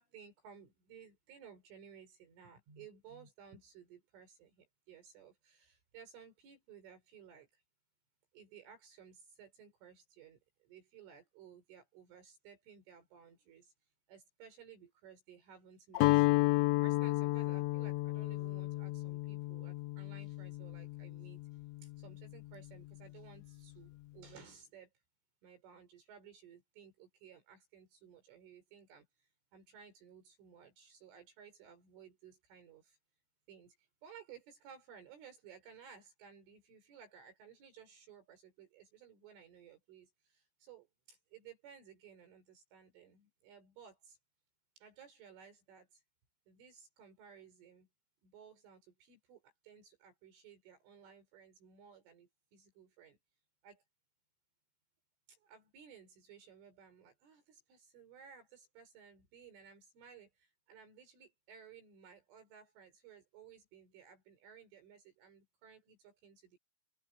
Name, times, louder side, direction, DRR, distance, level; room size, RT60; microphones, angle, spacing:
voice 1, 0.0-7.6 8.3-24.9 25.4-33.0 33.5-44.2 44.8-46.0 46.5-47.9 48.2-53.2 53.6-53.8 55.3-66.6, right 7 dB, 75° right, 7.4 m, -58 dB
Guitar, 16.0-22.0, left 21 dB, 80° left, 2.7 m, -32 dB
open air
omnidirectional pair, 5.8 m